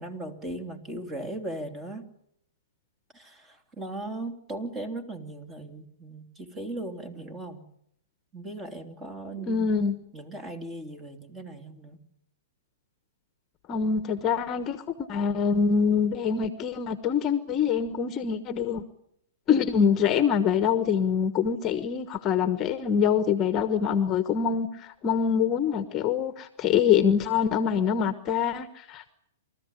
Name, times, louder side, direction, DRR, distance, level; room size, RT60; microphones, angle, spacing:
voice 1, 0.0-2.1 3.1-7.6 8.3-9.8 10.1-12.0, right 2 dB, 15° right, 6 dB, 3.1 m, -38 dB
voice 2, 9.5-10.0 13.7-14.8 15.1-18.8 19.5-29.1, left 7 dB, 25° left, 11 dB, 1.2 m, -25 dB
28.0 x 14.0 x 9.8 m, 0.77 s
hypercardioid pair, 135°, 0 cm